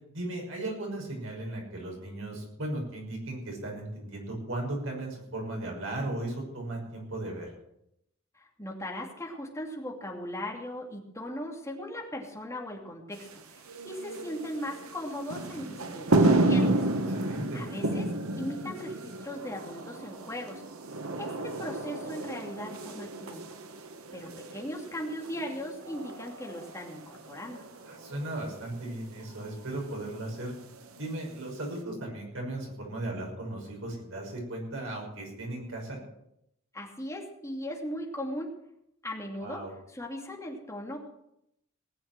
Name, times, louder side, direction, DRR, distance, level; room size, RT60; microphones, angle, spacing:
voice 1, 0.1-7.5 17.1-17.6 27.8-30.5 31.0-36.0 39.4-39.7, right 1 dB, 65° right, 0 dB, 6.0 m, -36 dB
voice 2, 8.3-16.8 17.5-18.1 18.4-20.6 21.2-23.4 24.1-27.6 36.7-38.5 39.0-39.6 39.9-41.0, left 1 dB, 15° left, 0 dB, 2.8 m, -38 dB
sound 1, 13.1-31.8, right 2 dB, 85° right, 1.5 m, -32 dB
19.0 x 7.8 x 7.7 m, 0.79 s
head